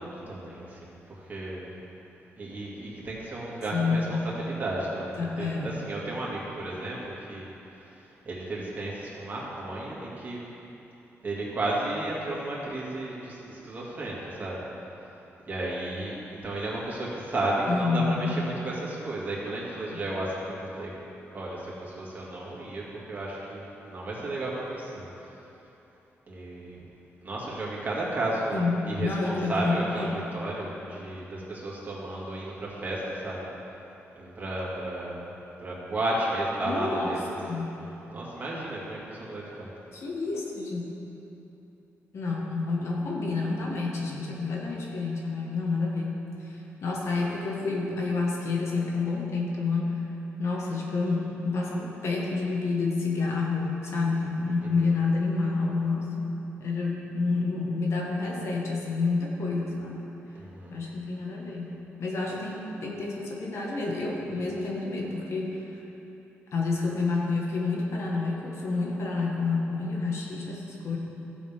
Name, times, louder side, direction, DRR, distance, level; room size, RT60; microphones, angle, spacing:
voice 1, 0.0-1.7 2.4-7.5 8.2-10.4 11.2-14.6 15.5-20.9 21.3-25.1 26.3-26.8 27.2-33.4 34.2-35.3 35.6-39.7 54.6-54.7 60.3-60.8, right 1 dB, 35° right, -6 dB, 2.4 m, -33 dB
voice 2, 3.7-4.2 5.2-5.8 17.7-18.4 19.9-20.0 28.5-30.2 36.6-37.8 39.9-40.8 42.1-50.0 50.4-60.0 60.7-61.7 62.0-65.6 66.5-71.0, left 3 dB, 65° left, -2 dB, 1.6 m, -29 dB
14.5 x 7.2 x 3.6 m, 3.0 s
cardioid pair, 115°, 5 cm